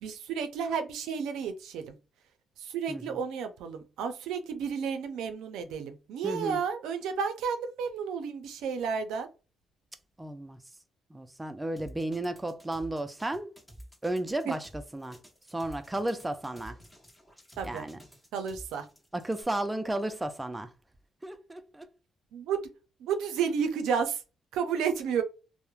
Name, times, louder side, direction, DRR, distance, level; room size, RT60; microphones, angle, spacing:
voice 1, 0.0-2.0 2.6-9.3 14.3-14.5 17.6-17.9 18.3-18.9 22.3-22.7 23.0-24.2 24.5-25.2, right 6 dB, 90° right, 0.4 m, -32 dB
voice 2, 2.9-3.2 6.2-6.6 10.2-10.6 11.1-13.5 14.0-15.2 15.5-16.8 17.6-18.0 19.1-20.7 21.2-21.9, right 1 dB, 15° right, 0.4 m, -33 dB
sound 1, 11.8-19.4, equal, 10° left, 1.0 m, -50 dB
3.0 x 2.0 x 2.3 m
cardioid pair, 90°, 0 cm